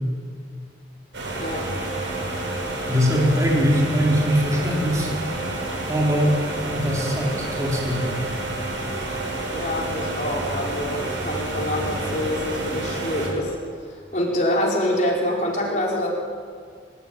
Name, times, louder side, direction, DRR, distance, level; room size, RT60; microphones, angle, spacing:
sound 1, 1.1-13.3, right 2 dB, 75° right, 8.0 m, -29 dB
voice 1, 1.4-1.7 9.5-13.6 13.9-16.1, left 1 dB, 40° left, -3 dB, 5.0 m, -26 dB
voice 2, 2.9-5.1 5.9-6.4 6.7-8.1, equal, 15° right, -4 dB, 4.6 m, -21 dB
28.5 x 15.5 x 9.2 m, 2.1 s
head